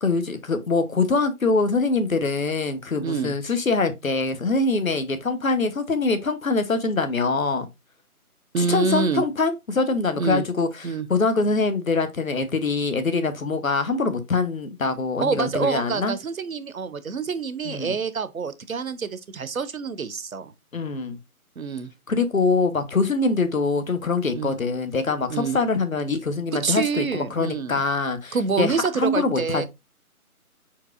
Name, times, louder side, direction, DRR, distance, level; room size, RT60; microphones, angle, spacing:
voice 1, 0.0-7.7 8.6-16.1 17.6-17.9 20.7-21.2 22.1-29.6, left 3 dB, 65° left, 1.0 m, -24 dB
voice 2, 3.0-3.3 8.5-9.2 10.2-10.4 10.8-11.1 15.2-20.5 21.6-21.9 24.3-24.5 25.3-25.6 26.6-27.8 28.3-29.6, right 5 dB, 65° right, 0.7 m, -26 dB
4.7 x 4.6 x 2.4 m
figure-of-eight pair, 170°, 45 cm